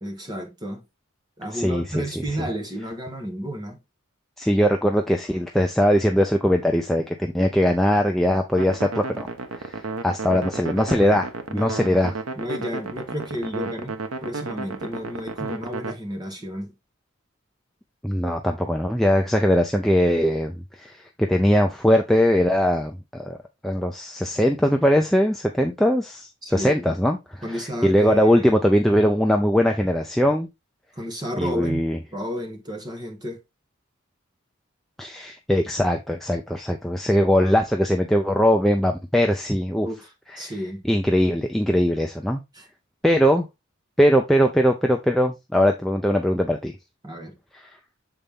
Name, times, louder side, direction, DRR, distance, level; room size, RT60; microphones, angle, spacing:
voice 1, 0.0-0.8 1.4-3.8 11.5-12.0 12.3-16.7 26.4-26.9 27.4-28.6 31.0-31.9 32.1-33.4 39.8-40.1 40.4-40.8 42.5-42.7 47.0-47.3, equal, 20° right, 1.2 m, -32 dB
voice 2, 1.5-2.0 4.4-9.3 9.6-12.1 18.0-23.4 23.6-30.5 31.4-32.0 35.0-39.9 40.3-40.5 40.8-42.4 43.0-43.5 44.0-46.7 47.5-47.7, equal, ahead, 0.4 m, -21 dB
sound 1, 8.6-15.9, right 3 dB, 90° right, 0.9 m, -33 dB
6.9 x 4.0 x 3.5 m
head